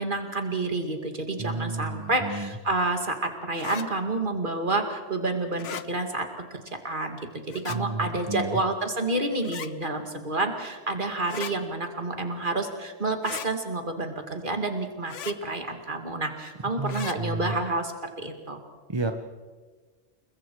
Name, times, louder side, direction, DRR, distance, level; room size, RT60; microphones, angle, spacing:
voice 1, 0.0-6.3 6.8-7.2 7.5-17.9 18.2-18.6, right 2 dB, 45° right, 5 dB, 2.4 m, -29 dB
voice 2, 1.4-2.5 7.7-8.6 16.8-17.5 18.9-19.1, right 3 dB, 25° right, 6 dB, 1.0 m, -31 dB
sound 1, 3.6-3.9 5.5-5.9 7.5-7.8 9.4-9.7 11.2-11.5 13.2-13.5 15.1-15.4 16.9-17.2, left 9 dB, 85° left, 1.2 m, -37 dB
29.5 x 21.0 x 4.7 m, 1.3 s
omnidirectional pair, 1.2 m